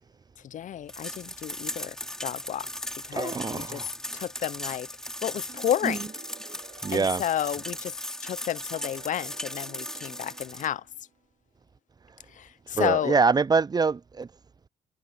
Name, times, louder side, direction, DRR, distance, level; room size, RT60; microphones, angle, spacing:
voice 1, 0.4-2.0 2.2-2.7 3.0-3.8 4.1-4.9 5.2-6.1 6.9-7.9 8.2-10.8 12.3-13.2, left 10 dB, 55° left, 0.4 m, -31 dB
sound 1, 0.9-10.7, equal, 5° left, 3.4 m, -38 dB
voice 2, 3.1-3.9 5.8-6.0 6.8-7.2 12.7-14.3, right 4 dB, 25° right, 0.4 m, -24 dB
sound 2, 5.5-8.1 8.7-11.2, right 6 dB, 50° right, 2.6 m, -52 dB
cardioid pair, 80°, 16 cm